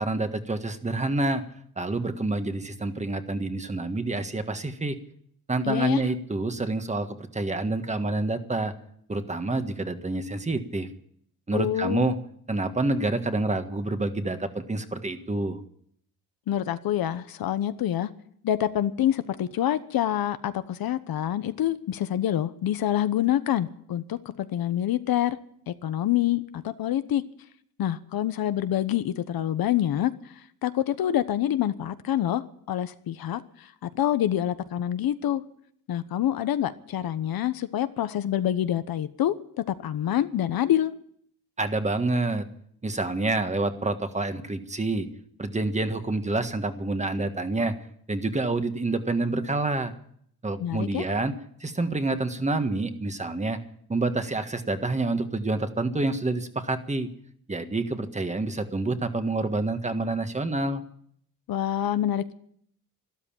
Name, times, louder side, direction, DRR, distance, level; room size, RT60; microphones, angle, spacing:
voice 1, 0.0-1.4 1.8-5.0 5.5-8.7 9.1-10.9 11.5-12.2 12.5-15.6 41.6-42.4 42.8-45.1 45.4-47.7 48.1-49.9 50.4-51.3 51.6-53.6 53.9-57.1 57.5-60.8, right 2 dB, 20° right, 1.6 m, -27 dB
voice 2, 5.6-6.0 11.5-12.1 16.5-18.1 18.4-25.4 25.7-27.2 27.8-30.1 30.6-35.4 35.9-39.3 39.7-40.9 50.6-51.0 61.5-62.3, left 11 dB, 75° left, 1.1 m, -26 dB
13.0 x 12.5 x 8.8 m
cardioid pair, 105°, 36 cm